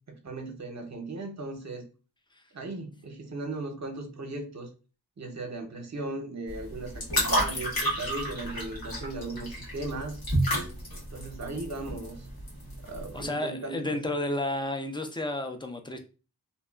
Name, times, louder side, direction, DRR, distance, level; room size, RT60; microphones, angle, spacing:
voice 1, 0.1-1.9 2.5-4.7 5.2-10.2 11.1-12.2 12.8-14.0, right 2 dB, 45° right, 4 dB, 0.6 m, -37 dB
sound 1, 6.5-13.2, equal, 70° left, 1.1 m, -31 dB
voice 2, 13.1-16.0, left 1 dB, 15° left, 6 dB, 0.4 m, -32 dB
2.8 x 2.3 x 2.2 m, 0.34 s
wide cardioid pair, 65°, 38 cm